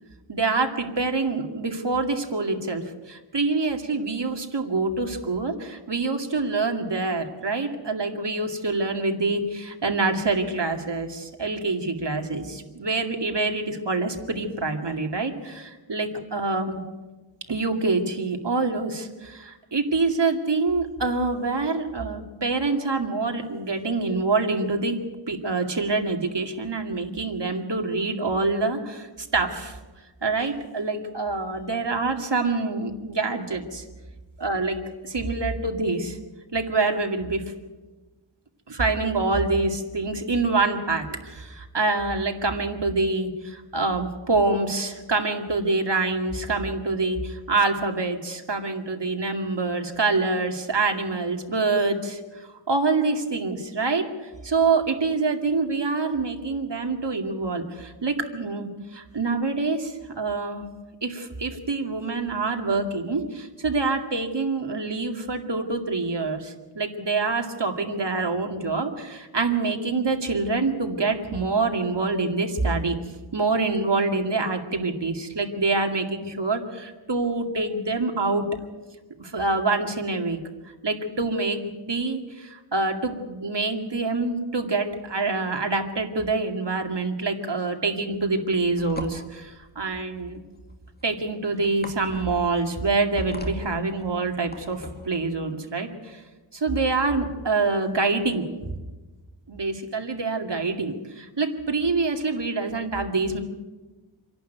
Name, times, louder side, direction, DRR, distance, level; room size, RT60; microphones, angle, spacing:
voice 1, 0.3-16.8 17.5-25.0 25.3-29.8 30.2-33.8 34.4-34.8 35.0-36.2 36.5-37.4 38.7-60.6 61.0-72.9 73.3-78.5 79.2-80.4 80.8-90.4 91.0-96.2 96.5-98.7 99.5-103.4, right 3 dB, 55° right, 3 dB, 2.4 m, -26 dB
sound 1, 88.3-95.1, left 1 dB, 20° left, 2.4 m, -42 dB
26.5 x 11.5 x 9.3 m, 1.2 s
wide cardioid pair, 65°, 49 cm